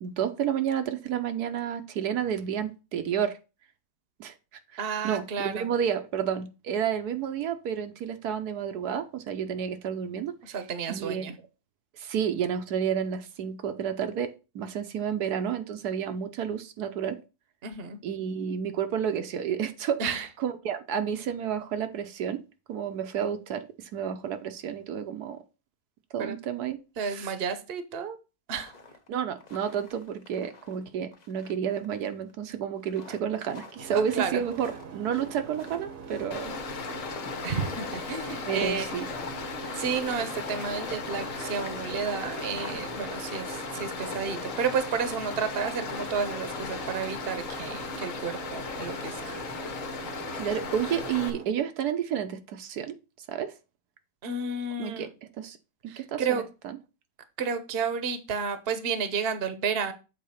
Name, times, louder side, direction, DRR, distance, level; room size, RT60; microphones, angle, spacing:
voice 1, 0.0-3.4 4.2-4.3 5.0-10.6 10.9-11.3 12.0-17.2 18.0-22.4 22.7-25.4 26.1-26.8 27.1-27.3 29.1-36.5 36.9-37.1 38.5-39.1 50.3-52.9 53.3-53.5 54.8-55.1 55.4-55.6 55.8-56.8, right 8 dB, 80° right, 8 dB, 1.3 m, -31 dB
voice 2, 4.8-5.7 10.4-11.4 17.6-18.0 20.0-20.3 26.2-26.4 27.0-28.2 28.5-28.7 33.9-34.4 37.4-38.9 39.7-49.4 54.2-55.1 55.9-56.4 57.4-59.9, right 5 dB, 45° right, 10 dB, 1.0 m, -31 dB
sound 1, 28.6-29.1 29.4-30.8 31.1-32.3 32.8-47.7, left 3 dB, 30° left, 0.9 m, -48 dB
sound 2, 33.8-51.5, right 6 dB, 65° right, 1.3 m, -43 dB
Stream, 36.3-51.3, left 5 dB, 60° left, 1.4 m, -37 dB
7.5 x 4.1 x 5.6 m, 0.30 s
omnidirectional pair, 1.7 m